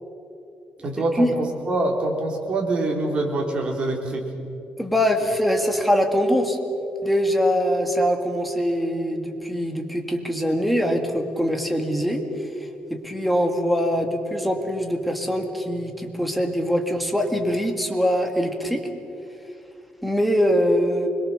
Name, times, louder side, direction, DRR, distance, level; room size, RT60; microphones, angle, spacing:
voice 1, 0.8-4.2, right 2 dB, 40° right, 1 dB, 3.8 m, -25 dB
voice 2, 4.8-6.6 7.0-12.2 12.9-18.9 20.0-21.1, equal, ahead, 3 dB, 2.1 m, -23 dB
25.0 x 22.0 x 6.8 m, 2.7 s
cardioid pair, 145°, 3 cm